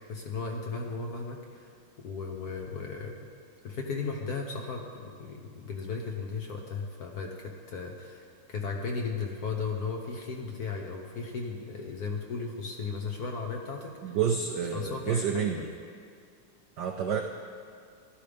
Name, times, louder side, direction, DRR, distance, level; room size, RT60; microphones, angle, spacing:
voice 1, 0.1-1.7 2.0-3.1 3.6-14.2 14.7-15.6, left 4 dB, 60° left, 1 dB, 1.1 m, -36 dB
voice 2, 14.0-15.7 16.8-17.2, right 7 dB, 75° right, 4 dB, 0.9 m, -29 dB
14.5 x 12.0 x 3.4 m, 2.2 s
omnidirectional pair, 2.4 m